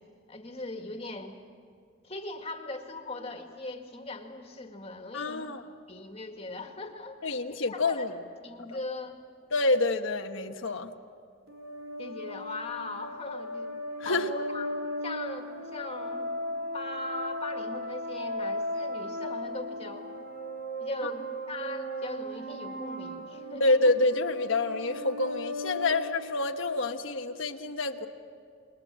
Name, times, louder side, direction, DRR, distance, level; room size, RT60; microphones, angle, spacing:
voice 1, 0.3-1.4 2.0-5.5 5.9-8.1 8.4-9.2 12.0-13.7 14.0-14.7 15.0-16.3 16.7-20.1 20.8-23.6, left 2 dB, 30° left, 4 dB, 2.0 m, -39 dB
voice 2, 5.1-5.6 7.2-8.2 9.5-10.9 14.0-14.3 21.0-21.1 23.6-28.1, left 2 dB, 75° left, 4 dB, 1.2 m, -27 dB
sound 1, 11.5-26.9, equal, 80° right, 3.7 m, -37 dB
28.0 x 21.5 x 7.6 m, 2.3 s
head